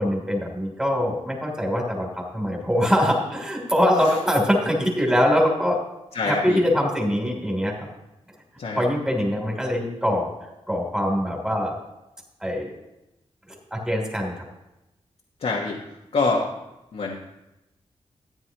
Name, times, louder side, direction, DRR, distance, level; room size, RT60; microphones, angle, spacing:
voice 1, 0.0-5.8 6.3-7.9 8.7-10.3 10.7-11.7 12.4-12.7 13.5-14.4, equal, 5° right, 0 dB, 3.1 m, -23 dB
voice 2, 6.1-6.6 8.6-8.8 15.4-15.8 16.1-16.5 16.9-17.2, left 3 dB, 70° left, -2 dB, 1.4 m, -25 dB
14.0 x 9.8 x 3.0 m, 0.95 s
wide cardioid pair, 85°, 11 cm